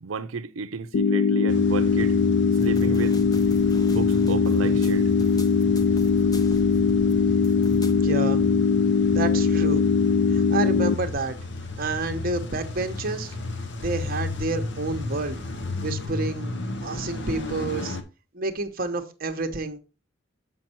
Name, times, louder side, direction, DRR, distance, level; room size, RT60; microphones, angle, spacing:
voice 1, 0.0-2.2 2.6-3.2 3.8-5.1, right 4 dB, 85° right, 0.6 m, -32 dB
sound 1, 0.9-10.9, left 5 dB, 75° left, 0.4 m, -21 dB
Car / Engine starting / Idling, 1.5-18.0, left 3 dB, 60° left, 0.9 m, -33 dB
sound 2, 2.6-7.9, left 2 dB, 20° left, 0.7 m, -41 dB
voice 2, 8.0-8.4 9.1-9.9 10.3-11.3 11.8-13.4 13.8-15.4 15.8-16.5 16.8-18.0 18.3-19.8, right 3 dB, 45° right, 1.0 m, -29 dB
7.4 x 5.4 x 4.3 m
head